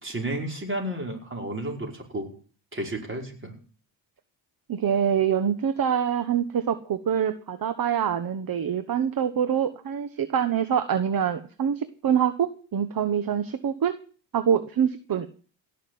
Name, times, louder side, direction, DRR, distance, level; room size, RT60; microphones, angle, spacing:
voice 1, 0.0-2.3 2.7-3.6, right 1 dB, 25° right, 2 dB, 5.2 m, -32 dB
voice 2, 4.7-14.0 14.3-15.3, right 8 dB, 45° right, 11 dB, 1.3 m, -25 dB
17.0 x 6.7 x 9.4 m, 0.41 s
cardioid pair, 95°, 47 cm